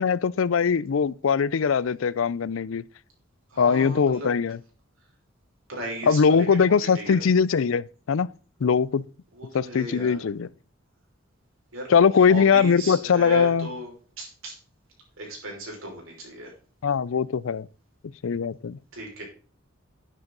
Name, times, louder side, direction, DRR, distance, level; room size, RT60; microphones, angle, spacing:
voice 1, 0.0-2.8 3.6-4.6 6.1-8.3 8.6-9.1 9.5-10.5 11.9-13.7 16.8-17.7 18.2-18.8, left 6 dB, 75° left, 0.4 m, -21 dB
voice 2, 3.5-4.3 5.7-7.3 9.3-10.2 11.7-11.9 12.3-13.9 14.2-14.5 15.2-16.5 18.9-19.2, right 1 dB, 85° right, 5.2 m, -36 dB
10.5 x 9.8 x 3.9 m
head